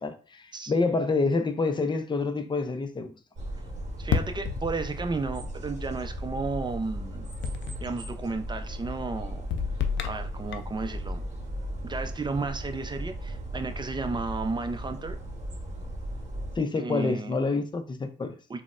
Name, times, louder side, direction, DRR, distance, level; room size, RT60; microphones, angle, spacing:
voice 1, 0.0-3.2 16.5-18.4, left 3 dB, 25° left, 0.5 m, -27 dB
sound 1, 3.4-16.6, right 1 dB, 40° right, 1.0 m, -36 dB
voice 2, 4.0-7.3 7.8-9.4 10.1-11.2 11.8-15.2 16.8-17.4 18.5-18.6, right 3 dB, 25° right, 0.5 m, -33 dB
sound 2, 4.1-5.2 7.4-8.0 9.5-10.8, left 7 dB, 75° left, 0.4 m, -31 dB
3.9 x 2.1 x 2.4 m
supercardioid pair, 65°, 19 cm